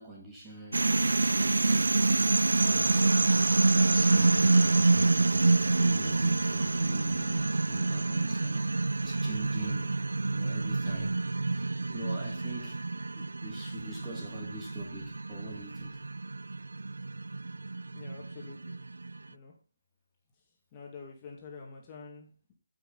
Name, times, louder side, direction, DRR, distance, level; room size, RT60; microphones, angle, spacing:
voice 1, 0.0-1.9 2.6-3.3 3.6-4.9 5.6-8.6 9.0-10.0 10.3-11.2 11.5-12.8 13.1-16.0, right 1 dB, 10° right, 2.2 m, -45 dB
sound 1, 0.7-19.2, right 3 dB, 75° right, 0.4 m, -27 dB
voice 2, 17.9-18.8 19.3-19.5 20.7-22.5, left 4 dB, 20° left, 2.3 m, -47 dB
15.0 x 6.2 x 4.1 m
figure-of-eight pair, 155°, 0 cm